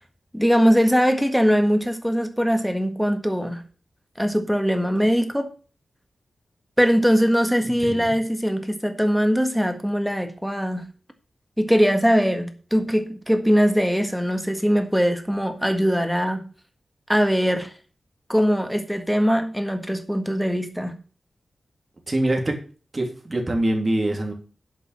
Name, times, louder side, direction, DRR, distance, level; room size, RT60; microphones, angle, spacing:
voice 1, 0.3-3.6 4.2-5.5 6.8-10.9 11.6-16.5 17.1-17.7 18.3-21.0, equal, ahead, 6 dB, 1.6 m, -21 dB
voice 2, 22.1-22.6 22.9-24.3, right 1 dB, 30° right, 1 dB, 2.8 m, -24 dB
8.4 x 5.4 x 7.6 m, 0.38 s
wide cardioid pair, 90°, 0 cm